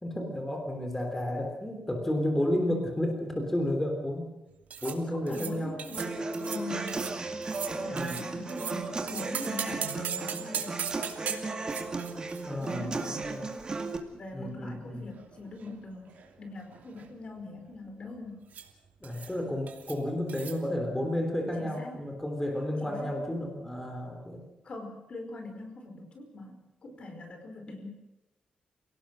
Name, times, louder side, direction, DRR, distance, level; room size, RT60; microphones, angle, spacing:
voice 1, 0.0-4.3 4.8-5.8 7.9-8.2 12.5-13.5 14.3-15.1 19.0-24.4, left 1 dB, 10° left, 2 dB, 3.5 m, -32 dB
sound 1, 4.7-5.0 5.3-5.5 5.8-6.1 6.3-6.6 6.9-7.2 7.4-8.8 9.1-13.8 14.0-14.1 14.9-15.8 16.1-16.3 16.6-17.1 18.5-18.7 19.0-19.4 19.7-20.0 20.3-20.6, right 8 dB, 75° right, 2.9 m, -39 dB
voice 2, 4.8-7.3 7.7-10.9 12.6-13.4 14.1-18.5 19.1-19.3 21.6-22.0 22.8-23.2 24.6-27.9, left 2 dB, 40° left, 5 dB, 5.0 m, -42 dB
Human voice / Acoustic guitar, 6.0-14.0, right 3 dB, 30° right, 2.2 m, -35 dB
28.5 x 18.0 x 6.5 m, 0.95 s
wide cardioid pair, 155°, 3 cm